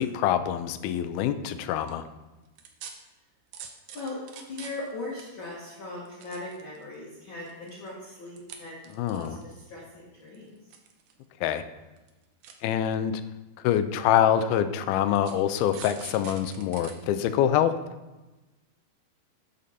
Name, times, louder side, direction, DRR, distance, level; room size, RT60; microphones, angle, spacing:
voice 1, 0.0-2.0 9.0-9.4 11.4-11.6 12.6-13.2 13.6-17.7, left 10 dB, 80° left, 11 dB, 2.5 m, -25 dB
sound 1, 1.6-1.9 2.6-2.9 3.5-4.9 5.2-5.3 6.0-6.9 7.4-7.9 8.4-8.6 8.8-9.5 10.3-11.2 11.5-11.6 12.0-12.1 12.4-12.5 13.4-13.5 14.1-14.2 15.2-16.9 17.3-17.4, right 7 dB, 70° right, 2.2 m, -44 dB
voice 2, 4.5-8.8 9.1-10.5, left 2 dB, 40° left, -5 dB, 2.0 m, -39 dB
14.0 x 6.5 x 4.3 m, 1.1 s
omnidirectional pair, 4.4 m